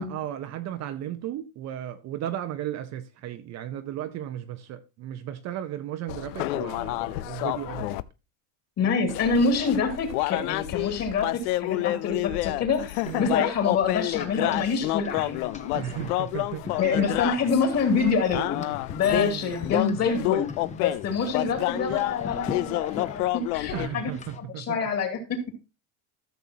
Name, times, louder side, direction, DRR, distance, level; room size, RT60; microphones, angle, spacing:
voice 1, 0.0-8.0 13.1-13.4 15.7-17.3 19.2-20.0 23.7-24.8, right 11 dB, 40° right, 0.7 m, -35 dB
sound 1, 6.1-8.0 9.1-23.9, left 18 dB, 90° left, 0.6 m, -29 dB
voice 2, 8.8-15.8 16.8-25.6, left 5 dB, 35° left, 2.6 m, -26 dB
sound 2, 12.9-24.4, left 4 dB, 15° left, 0.8 m, -43 dB
13.5 x 6.8 x 2.8 m
cardioid pair, 145°, 44 cm